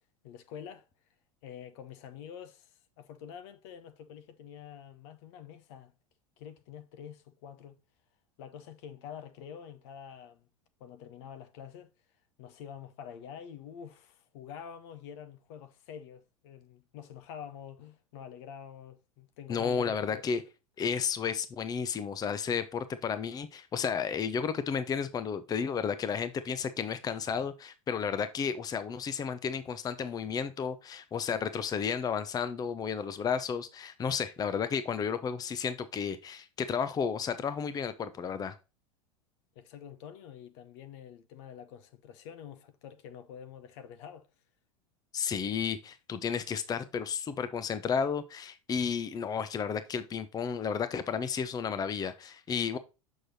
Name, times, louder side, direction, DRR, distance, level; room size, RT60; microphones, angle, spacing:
voice 1, 0.2-0.9 1.4-5.9 6.4-7.8 8.4-10.5 10.8-11.9 12.4-20.3 39.5-44.3, left 8 dB, 55° left, 0.8 m, -47 dB
voice 2, 19.5-20.4 20.8-38.6 45.1-52.8, left 6 dB, 20° left, 0.7 m, -32 dB
6.5 x 6.3 x 2.7 m
figure-of-eight pair, 85°, 18 cm